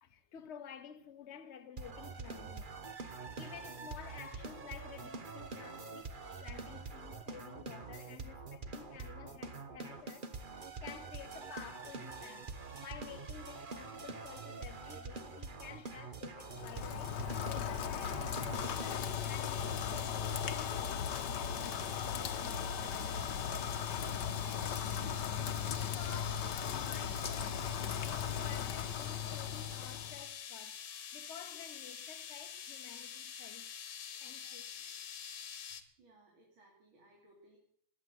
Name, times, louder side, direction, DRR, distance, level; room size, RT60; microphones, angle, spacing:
voice 1, 0.0-2.8 3.1-12.5 12.8-17.2 17.5-23.6 25.7-30.8 31.1-33.7 34.1-34.9, left 8 dB, 40° left, 1.2 m, -52 dB
sound 1, 1.8-18.9, right 4 dB, 30° right, 1.1 m, -45 dB
Rain, 16.4-30.3, left 8 dB, 65° left, 1.6 m, -37 dB
sound 2, 18.5-35.8, left 8 dB, 85° left, 2.0 m, -46 dB
voice 2, 34.1-34.7 36.0-37.6, right 1 dB, 85° right, 3.8 m, -65 dB
20.5 x 8.9 x 7.7 m
omnidirectional pair, 2.2 m